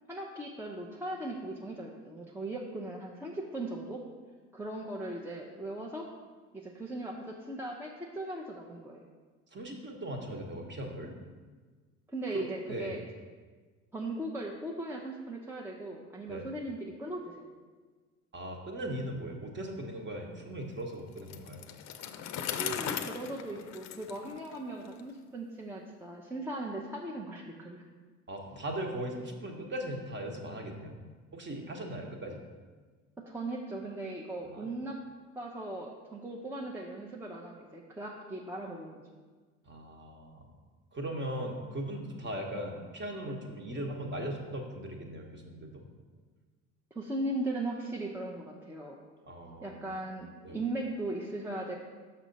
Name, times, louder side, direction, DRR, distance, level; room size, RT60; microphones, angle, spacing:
voice 1, 0.1-4.0 4.5-6.1 6.5-9.0 12.1-13.0 13.9-17.5 22.5-27.8 33.3-35.0 35.4-39.0 46.9-49.0 49.6-51.7, right 1 dB, 5° right, -1 dB, 0.7 m, -38 dB
voice 2, 9.5-11.1 12.3-13.0 16.3-16.5 18.3-21.6 28.3-31.0 31.3-32.4 34.4-34.7 39.6-40.4 40.9-45.9 49.3-50.0 50.4-50.6, right 1 dB, 30° right, 2 dB, 1.2 m, -39 dB
Bicycle, 21.2-25.0, left 8 dB, 50° left, 0.6 m, -38 dB
6.1 x 5.7 x 4.0 m, 1.4 s
hypercardioid pair, 65°, 37 cm